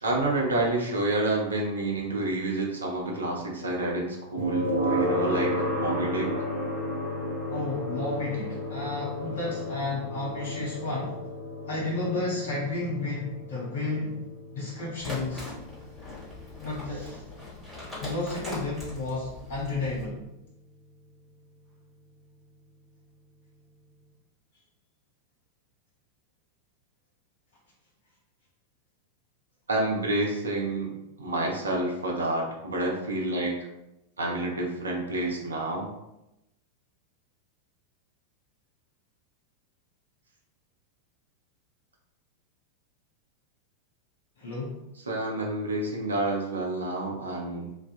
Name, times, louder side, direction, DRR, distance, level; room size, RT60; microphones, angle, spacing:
voice 1, 0.0-6.3 29.7-30.9 31.2-33.5 34.2-35.9 45.1-47.7, right 2 dB, 75° right, -1 dB, 0.5 m, -29 dB
sound 1, 4.4-19.3, equal, 30° right, 0.8 m, -33 dB
voice 2, 7.5-11.2 11.7-14.2 14.5-15.4 16.6-17.1 18.0-20.3 44.4-44.8, left 2 dB, 60° left, -4 dB, 0.5 m, -32 dB
sound 2, 15.0-20.0, left 2 dB, 5° left, 1.3 m, -41 dB
2.5 x 2.3 x 2.4 m, 0.90 s
figure-of-eight pair, 90°, 0 cm